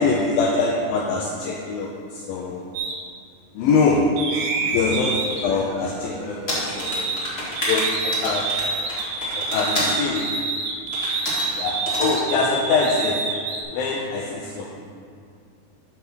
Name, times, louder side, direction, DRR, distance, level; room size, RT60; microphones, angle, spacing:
voice 1, 0.0-2.7 3.5-4.0 4.6-7.1 7.7-8.5 9.3-10.2 11.5-13.2 13.7-14.8, left 4 dB, 80° left, -1 dB, 2.2 m, -24 dB
sound 1, 2.7-3.0 4.2-7.3 7.6-13.6, right 4 dB, 75° right, 2.5 m, -28 dB
sound 2, 6.5-10.0 10.9-11.5 11.9-12.2, equal, 55° left, 0.6 m, -28 dB
8.3 x 5.5 x 6.0 m, 2.2 s
omnidirectional pair, 4.6 m